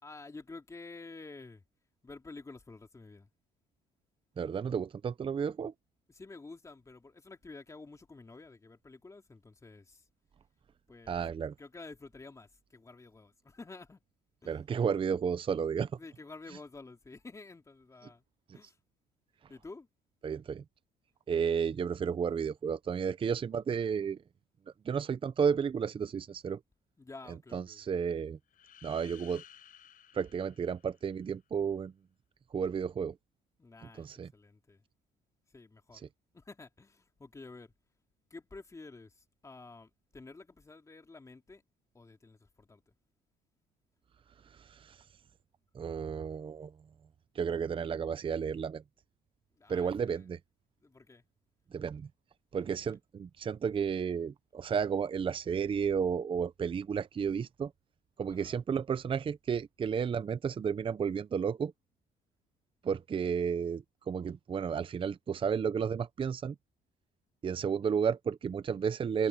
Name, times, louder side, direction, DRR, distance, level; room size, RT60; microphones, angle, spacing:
voice 1, 0.0-1.6 2.0-3.3 6.1-10.1 10.9-11.2 11.6-14.0 14.4-14.6 16.0-18.2 18.5-18.8 19.5-19.9 27.0-27.8 33.6-34.8 35.5-36.0 36.3-37.7 38.3-41.6 41.9-42.8 49.6-50.3 50.8-51.2 52.5-52.8 58.3-58.6, left 3 dB, 20° left, 3.1 m, -50 dB
voice 2, 4.4-5.7 11.1-11.5 14.5-16.0 20.2-20.6 21.3-24.2 24.8-26.6 27.5-28.4 28.8-29.4 30.1-31.9 32.5-33.1 34.0-34.3 44.6-45.0 45.7-46.7 47.3-48.8 49.7-50.4 51.7-52.1 52.5-57.7 58.2-61.7 62.8-66.6 67.4-69.3, right 6 dB, 30° right, 0.7 m, -32 dB
sound 1, 28.5-31.4, left 10 dB, 55° left, 5.2 m, -56 dB
cardioid pair, 110°, 17 cm